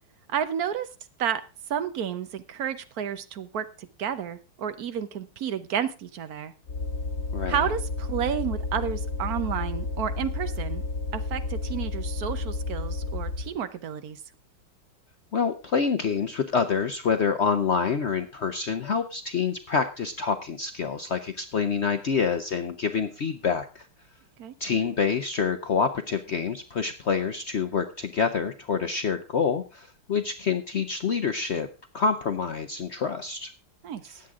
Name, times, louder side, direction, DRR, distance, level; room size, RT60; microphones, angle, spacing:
voice 1, 0.3-0.9 1.2-1.4 1.7-6.5 7.5-10.8 11.1-14.2 24.4-24.5 33.8-34.2, right 8 dB, 55° right, 11 dB, 1.1 m, -31 dB
sound 1, 6.7-13.6, left 3 dB, 50° left, 0.7 m, -31 dB
voice 2, 15.3-23.9 24.6-31.7 31.9-33.5, left 6 dB, 90° left, 8 dB, 0.6 m, -27 dB
18.0 x 7.7 x 3.6 m, 0.30 s
omnidirectional pair, 2.3 m